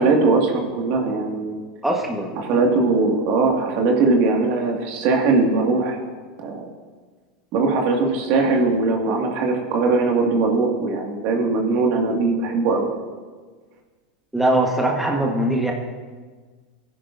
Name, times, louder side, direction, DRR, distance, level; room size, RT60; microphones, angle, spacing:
voice 1, 0.0-1.6 2.4-6.0 6.4-6.7 7.5-12.9, right 3 dB, 55° right, 1 dB, 2.1 m, -20 dB
voice 2, 1.8-2.5 14.3-15.7, right 1 dB, 5° right, 0 dB, 1.4 m, -21 dB
17.0 x 9.9 x 2.7 m, 1.4 s
hypercardioid pair, 100°, 4 cm